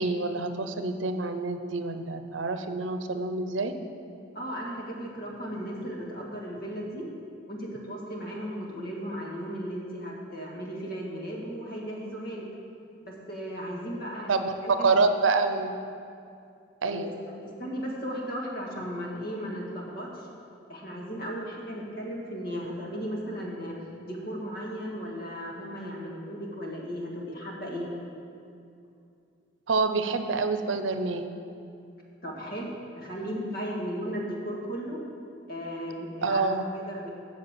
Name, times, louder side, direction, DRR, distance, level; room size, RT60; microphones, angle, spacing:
voice 1, 0.0-3.7 14.3-15.7 16.8-17.1 29.7-31.3 36.2-36.7, right 3 dB, 90° right, 8 dB, 0.7 m, -27 dB
voice 2, 4.3-7.1 7.5-12.5 13.0-15.0 16.8-17.1 17.4-20.3 20.7-27.9 32.2-35.0 35.5-37.1, equal, 55° left, -2 dB, 1.8 m, -36 dB
7.8 x 7.0 x 7.6 m, 2.5 s
head